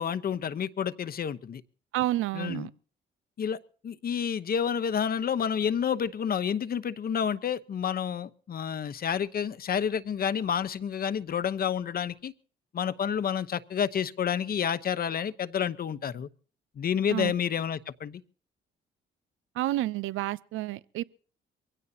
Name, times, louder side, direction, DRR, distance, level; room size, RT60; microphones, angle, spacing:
voice 1, 0.0-1.6 2.3-2.7 3.4-3.6 3.8-12.3 12.7-16.3 16.8-18.2, left 8 dB, 50° left, 0.9 m, -29 dB
voice 2, 1.9-2.7 17.1-17.3 19.6-21.0, right 15 dB, 85° right, 0.6 m, -30 dB
23.5 x 16.5 x 2.8 m
cardioid pair, 90°, 20 cm